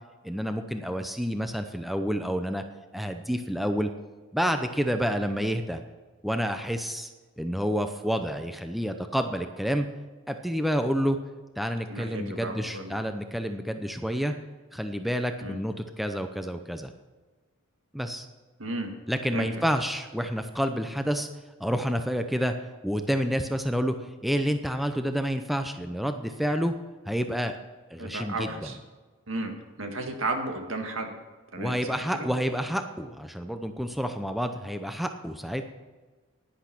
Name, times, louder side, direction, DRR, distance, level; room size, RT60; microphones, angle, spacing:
voice 1, 0.2-2.6 2.9-3.9 4.3-5.8 6.2-7.1 7.4-9.9 10.3-11.2 11.6-14.3 14.7-16.9 17.9-18.3 19.1-21.3 21.6-22.5 22.8-24.0 24.2-26.7 27.0-27.6 27.9-28.5 31.6-35.6, equal, ahead, 6 dB, 0.6 m, -29 dB
voice 2, 11.9-13.0 15.4-15.6 18.6-18.9 19.3-19.5 28.0-28.8 29.3-29.5 29.8-31.1 31.5-32.3, right 2 dB, 70° right, 4 dB, 1.9 m, -33 dB
11.0 x 10.5 x 6.0 m, 1.3 s
head